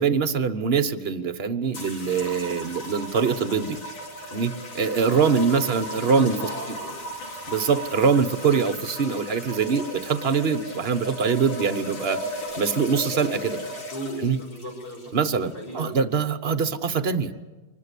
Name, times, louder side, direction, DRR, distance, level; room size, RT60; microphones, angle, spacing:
voice 1, 0.0-3.8 4.3-6.3 7.5-13.6 14.2-14.4 15.1-17.3, right 5 dB, 40° right, 11 dB, 1.1 m, -23 dB
sound 1, 1.7-16.0, left 1 dB, 80° left, 4.6 m, -36 dB
voice 2, 5.0-5.7 5.9-6.9 13.6-15.0 15.5-16.0, equal, 50° left, 0 dB, 7.0 m, -36 dB
25.0 x 20.5 x 8.4 m, 1.2 s
omnidirectional pair, 2.1 m